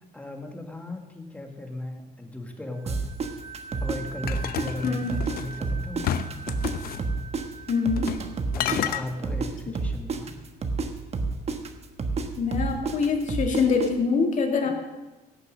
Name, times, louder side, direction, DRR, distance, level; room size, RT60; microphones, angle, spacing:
voice 1, 0.1-3.0 3.8-6.2 8.6-10.3 14.6-14.7, left 1 dB, 10° left, 4 dB, 1.8 m, -36 dB
sound 1, 2.7-9.2, right 5 dB, 15° right, 1.8 m, -44 dB
sound 2, 2.9-5.4 5.6-9.5 9.7-13.9, right 4 dB, 40° right, 1.3 m, -29 dB
sound 3, 4.3-5.6 6.0-7.0 8.0-8.3 8.5-9.0, left 10 dB, 60° left, 0.7 m, -30 dB
voice 2, 7.7-8.1 12.4-14.7, left 5 dB, 45° left, 2 dB, 2.2 m, -24 dB
16.5 x 6.9 x 6.4 m, 1.1 s
cardioid pair, 110°, 17 cm